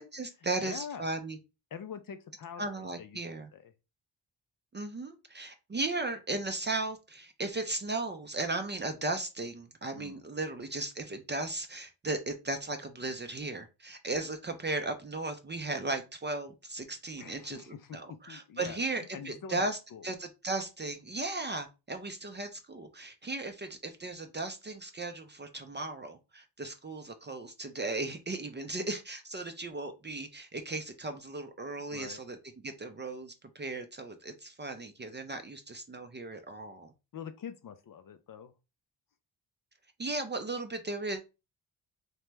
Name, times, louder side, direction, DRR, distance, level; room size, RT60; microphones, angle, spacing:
voice 1, 0.0-1.4 2.6-3.5 4.7-19.8 20.0-32.4 32.6-36.9 40.0-41.2, right 2 dB, 25° right, 0.4 m, -36 dB
voice 2, 0.6-1.0 1.7-3.2 3.5-3.7 9.9-10.2 17.2-18.8 19.1-20.1 31.9-32.2 37.1-38.5, left 7 dB, 45° left, 0.5 m, -44 dB
2.9 x 2.2 x 3.3 m
cardioid pair, 60°, 48 cm